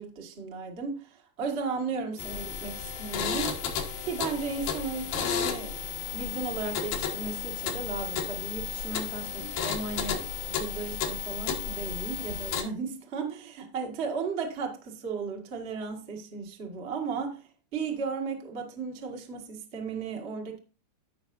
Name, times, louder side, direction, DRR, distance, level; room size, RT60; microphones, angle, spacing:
voice 1, 0.0-3.7 4.0-5.8 6.1-20.6, right 5 dB, 45° right, 0.8 m, -35 dB
sound 1, 2.2-12.6, left 7 dB, 80° left, 3.1 m, -33 dB
15.5 x 5.6 x 2.6 m
omnidirectional pair, 4.2 m